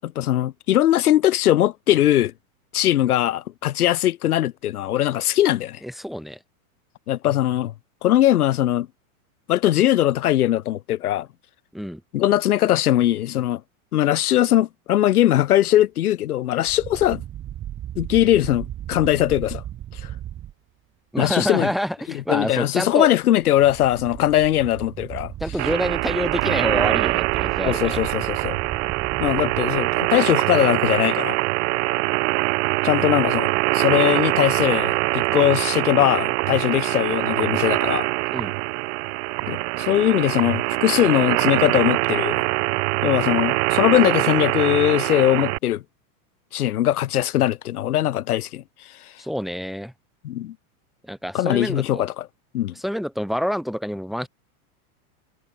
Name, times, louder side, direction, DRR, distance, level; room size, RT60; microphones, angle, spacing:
voice 1, 0.0-2.3 2.7-5.8 7.1-7.7 8.0-8.9 9.5-11.3 12.1-13.6 13.9-17.2 18.0-19.6 19.9-20.1 21.2-21.7 22.1-25.3 27.7-28.6 29.2-31.4 32.8-38.1 39.5-42.5 43.0-45.8 46.5-48.6 49.0-49.1 50.2-50.6 51.3-52.3 52.5-52.7, left 13 dB, 80° left, 7.4 m, -20 dB
voice 2, 5.8-6.4 11.7-12.0 21.1-23.1 25.4-28.1 38.3-38.5 49.2-49.9 51.0-52.0 52.8-54.3, equal, ahead, 4.2 m, -27 dB
sound 1, 16.6-20.5 23.3-30.6, right 12 dB, 25° right, 7.1 m, -35 dB
sound 2, 25.6-45.6, right 26 dB, 50° right, 2.4 m, -23 dB
supercardioid pair, 150°, 44 cm